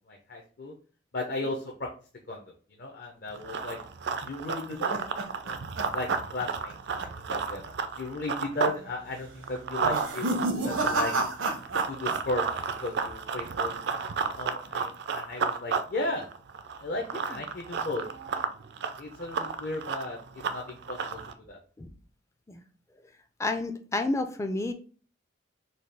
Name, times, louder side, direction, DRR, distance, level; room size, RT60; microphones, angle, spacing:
voice 1, 0.1-0.7 1.1-1.9 2.3-3.8 4.1-5.0 5.4-5.6 5.9-6.7 7.0-7.6 8.0-10.3 10.6-11.1 11.9-12.4 12.8-16.3 16.8-18.0 18.3-18.5 19.0-21.2 21.5-21.6, left 2 dB, 50° left, 0 dB, 0.6 m, -35 dB
Run, 3.3-8.8 9.1-21.3, right 5 dB, 60° right, 0.4 m, -32 dB
sound 1, 4.2-6.7 7.0-7.4 7.7-7.8 8.5-8.9 9.8-12.2 12.5-13.1, right 2 dB, 80° right, 0.8 m, -32 dB
voice 2, 23.4-24.7, left 2 dB, 15° left, 7 dB, 0.3 m, -30 dB
4.1 x 2.3 x 3.3 m, 0.40 s
head